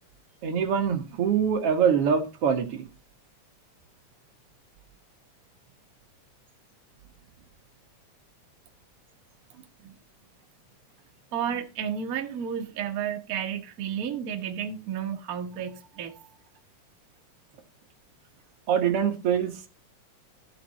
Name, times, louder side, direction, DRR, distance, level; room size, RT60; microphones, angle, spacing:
voice 1, 0.4-2.8 18.7-19.7, right 7 dB, 55° right, 2.0 m, -24 dB
voice 2, 11.3-16.4, right 8 dB, 80° right, 0.8 m, -32 dB
13.5 x 6.0 x 4.1 m
omnidirectional pair, 3.6 m